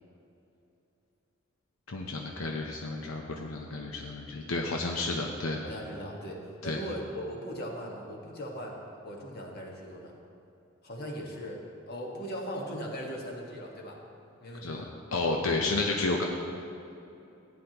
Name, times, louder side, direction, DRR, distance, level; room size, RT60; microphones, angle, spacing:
voice 1, 1.9-5.6 6.6-6.8 14.6-14.8 15.1-16.2, left 3 dB, 85° left, 1 dB, 0.8 m, -31 dB
voice 2, 5.6-8.7 9.0-10.2 10.8-11.6 11.9-14.0 14.4-14.9, equal, 50° left, -1 dB, 1.5 m, -39 dB
14.5 x 9.5 x 3.0 m, 2.8 s
head